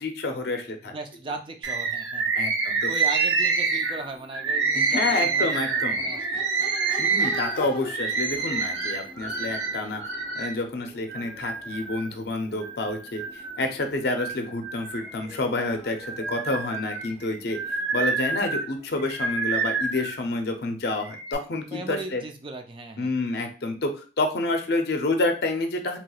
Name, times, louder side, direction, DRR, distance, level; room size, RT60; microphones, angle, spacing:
voice 1, 0.0-0.9 2.3-2.9 4.7-6.0 7.0-10.0 10.4-13.2 13.6-17.6 17.9-22.2 23.0-26.0, left 2 dB, 55° left, 4 dB, 0.5 m, -28 dB
voice 2, 0.8-2.3 2.9-6.4 7.7-7.8 16.3-16.4 21.6-23.2, right 3 dB, 25° right, 5 dB, 0.3 m, -38 dB
Bird, 1.6-10.5 11.1-12.1 12.6-13.6 14.0-15.4 15.9-20.2 20.9-21.4, right 4 dB, 75° right, 0.7 m, -27 dB
Crowd / Race car auto racing / Accelerating revving vroom, 3.7-20.8, left 1 dB, 25° left, 1.1 m, -46 dB
3.0 x 2.9 x 2.3 m, 0.37 s
head